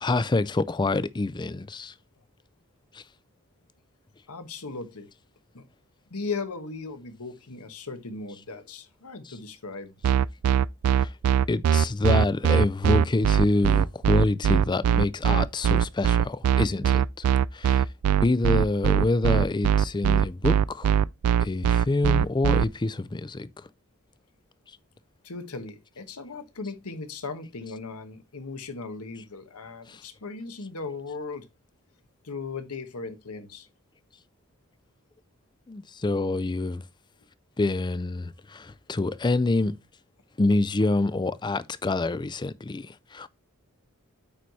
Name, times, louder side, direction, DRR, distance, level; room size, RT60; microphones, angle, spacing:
voice 1, 0.0-1.9 2.9-3.0 8.3-8.4 9.2-9.4 11.0-11.1 11.5-17.2 17.5-17.8 18.2-21.0 21.4-23.5 29.2-29.3 29.9-30.0 35.7-36.8 37.6-39.8 40.4-43.3, left 2 dB, 20° left, 0.4 m, -26 dB
voice 2, 4.3-5.1 5.5-5.6 6.1-9.9 25.2-31.5 32.2-33.7, left 4 dB, 85° left, 1.3 m, -37 dB
sound 1, 10.0-22.6, right 9 dB, 80° right, 0.3 m, -21 dB
8.7 x 4.8 x 4.1 m
head